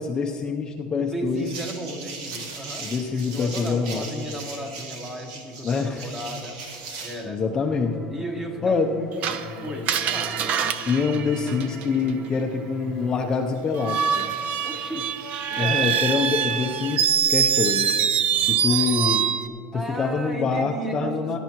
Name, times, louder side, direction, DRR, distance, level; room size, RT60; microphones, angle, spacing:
voice 1, 0.0-1.5 2.8-4.1 5.6-6.1 7.2-7.9 8.6-8.9 10.9-14.3 15.6-17.9 18.5-19.3 19.7-21.4, left 5 dB, 20° left, 1 dB, 0.6 m, -25 dB
voice 2, 1.0-2.9 3.3-6.6 7.0-7.4 8.1-9.1 9.6-10.4 14.6-15.1 15.5-15.9 18.6-19.0 19.7-21.4, right 1 dB, 15° right, 3 dB, 1.3 m, -35 dB
sound 1, 1.3-7.2, right 4 dB, 85° right, 2.2 m, -38 dB
sound 2, 7.6-13.1, left 4 dB, 5° left, 1.0 m, -41 dB
Screech, 9.2-12.1 13.7-19.5, right 8 dB, 40° right, 0.6 m, -24 dB
20.0 x 11.0 x 3.0 m, 2.4 s
supercardioid pair, 150°, 4 cm